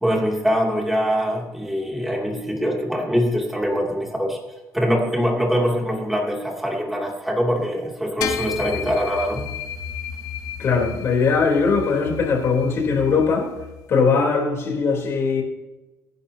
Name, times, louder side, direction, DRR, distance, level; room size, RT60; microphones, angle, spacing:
voice 1, 0.0-4.4 4.7-9.4, equal, 5° right, 2.7 m, -23 dB
sound 1, 8.2-13.8, left 9 dB, 75° left, 0.8 m, -33 dB
voice 2, 10.6-13.5 13.9-15.4, left 5 dB, 50° left, 3.5 m, -20 dB
22.5 x 10.5 x 2.8 m
cardioid pair, 145°, 6 cm